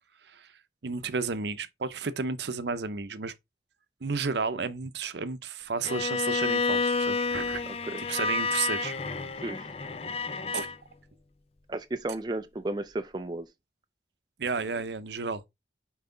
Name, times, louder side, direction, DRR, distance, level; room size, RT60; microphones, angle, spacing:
voice 1, 0.8-3.3 4.0-7.6 8.0-8.9 10.5-10.7 14.4-15.4, right 4 dB, 70° right, 0.7 m, -32 dB
Bowed string instrument, 5.8-10.8, left 4 dB, 35° left, 0.5 m, -30 dB
voice 2, 11.7-13.5, right 2 dB, 25° right, 0.4 m, -33 dB
5.7 x 4.8 x 3.8 m
head